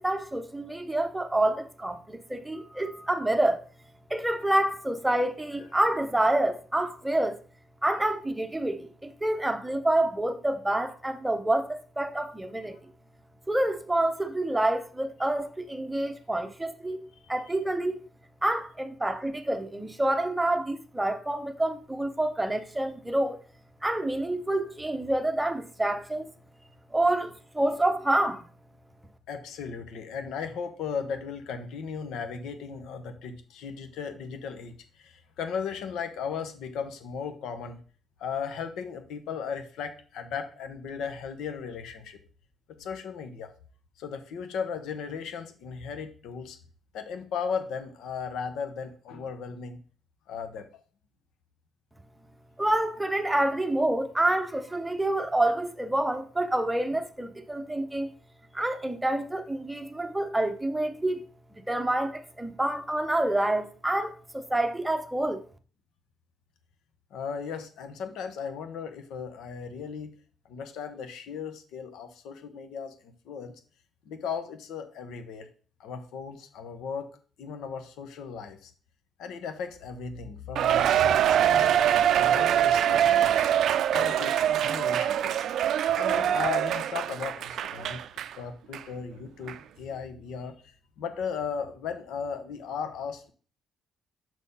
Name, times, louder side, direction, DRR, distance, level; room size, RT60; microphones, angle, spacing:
voice 1, 0.0-3.6 4.1-7.4 7.8-12.8 13.5-17.0 17.3-18.0 18.4-23.4 23.8-26.2 26.9-28.5 52.6-58.1 58.5-61.3 61.7-65.4, right 1 dB, 5° right, 0.7 m, -27 dB
voice 2, 29.3-37.8 38.2-42.2 42.8-43.5 44.0-46.6 46.9-49.8 50.3-50.7 67.1-70.2 70.5-73.5 74.1-75.5 75.8-77.1 77.4-78.7 79.2-81.8 82.2-83.5 83.9-85.4 85.9-88.0 88.3-93.3, left 6 dB, 85° left, 1.1 m, -36 dB
Cheering, 80.6-88.3 88.7-88.8 89.5-89.6, right 10 dB, 65° right, 0.4 m, -24 dB
6.4 x 4.4 x 5.4 m
cardioid pair, 150°, 0 cm